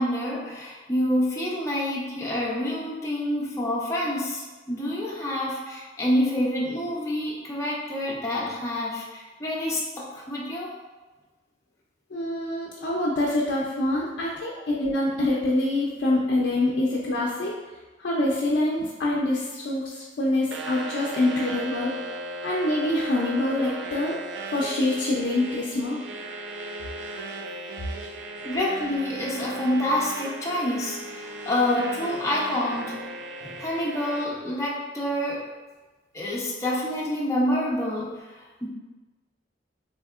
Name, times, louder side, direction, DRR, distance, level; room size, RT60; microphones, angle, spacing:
voice 1, 0.0-10.7 28.4-33.0 33.4-35.4 36.1-38.7, left 1 dB, 15° left, -6 dB, 0.5 m, -27 dB
voice 2, 12.1-17.5 18.0-21.9 22.4-24.2 24.5-26.0, left 1 dB, 80° left, -4 dB, 0.4 m, -25 dB
sound 1, 20.5-34.2, right 2 dB, 90° right, 0.4 m, -36 dB
3.4 x 2.8 x 2.3 m, 1.2 s
head